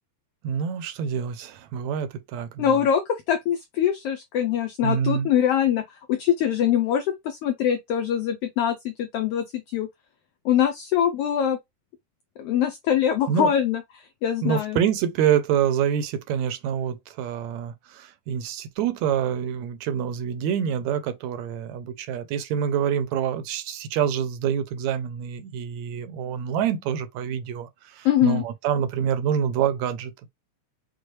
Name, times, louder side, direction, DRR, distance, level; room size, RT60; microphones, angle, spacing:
voice 1, 0.4-2.7 4.8-5.3 13.3-13.5 14.4-30.3, right 8 dB, 80° right, 1.9 m, -26 dB
voice 2, 2.6-9.9 10.4-11.6 12.4-14.8 28.0-28.4, left 9 dB, 85° left, 1.3 m, -23 dB
6.1 x 2.3 x 3.1 m
omnidirectional pair, 3.3 m